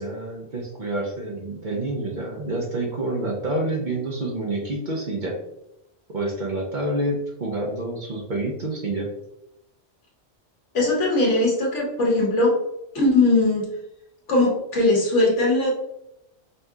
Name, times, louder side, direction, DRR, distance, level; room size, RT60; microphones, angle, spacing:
voice 1, 0.0-5.3 6.1-9.1, right 2 dB, 45° right, 0 dB, 0.8 m, -28 dB
voice 2, 10.7-12.6 12.9-13.7 14.3-15.7, left 2 dB, 80° left, -2 dB, 1.5 m, -20 dB
5.4 x 2.7 x 2.4 m, 0.84 s
omnidirectional pair, 1.2 m